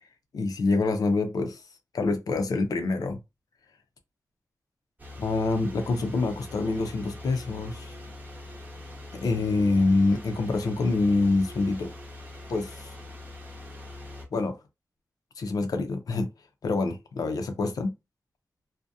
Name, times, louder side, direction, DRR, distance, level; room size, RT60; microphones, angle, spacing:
voice 1, 0.3-1.6 1.9-3.2 5.2-8.0 9.1-11.9 12.5-12.9 14.3-14.6 15.4-16.3 16.6-17.9, left 3 dB, 80° left, 0.5 m, -26 dB
sound 1, 5.0-14.3, left 2 dB, 30° right, 0.9 m, -43 dB
2.6 x 2.1 x 2.3 m
wide cardioid pair, 85°, 6 cm